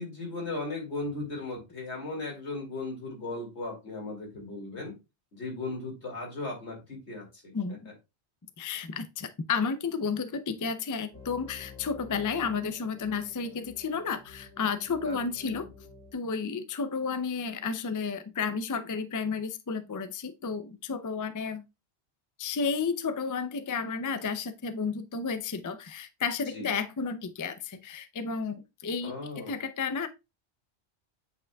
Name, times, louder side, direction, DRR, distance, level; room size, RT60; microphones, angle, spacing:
voice 1, 0.0-5.0 5.3-7.5 15.0-15.2 15.5-15.6 26.5-26.7 29.0-29.5, left 2 dB, 85° left, 2.5 m, -37 dB
voice 2, 8.6-15.7 16.1-21.6 22.4-30.1, left 5 dB, 30° left, 0.3 m, -32 dB
sound 1, 11.1-16.1, left 4 dB, 65° left, 1.9 m, -50 dB
8.4 x 5.1 x 2.3 m
omnidirectional pair, 1.1 m